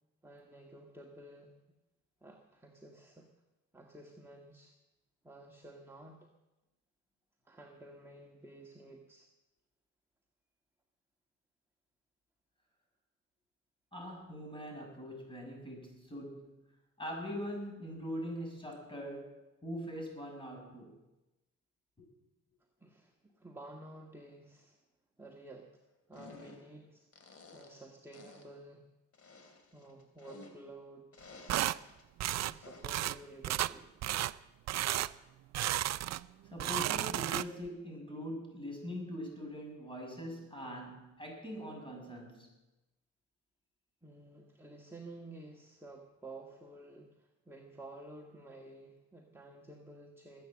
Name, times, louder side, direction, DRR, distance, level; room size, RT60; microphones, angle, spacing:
voice 1, 0.2-1.8 2.2-3.3 3.7-4.7 5.2-6.3 7.5-9.3 22.8-24.8 25.2-25.7 26.1-28.8 29.7-32.0 32.5-33.9 44.0-50.4, right 2 dB, 10° right, 0 dB, 1.7 m, -52 dB
voice 2, 13.9-16.5 17.0-21.0 22.0-22.1 36.5-42.5, equal, 15° left, 1 dB, 7.1 m, -42 dB
sound 1, 26.1-26.8 27.1-27.9 28.1-28.6 29.1-30.8 31.1-32.0 32.6-33.0, left 3 dB, 50° left, 3.0 m, -54 dB
sound 2, 31.5-31.8 32.2-32.5 32.8-33.2 33.4-33.7 34.0-34.3 34.7-35.1 35.5-36.2 36.5-37.7, right 14 dB, 60° right, 0.5 m, -33 dB
20.5 x 8.6 x 7.6 m, 1.0 s
cardioid pair, 90°, 30 cm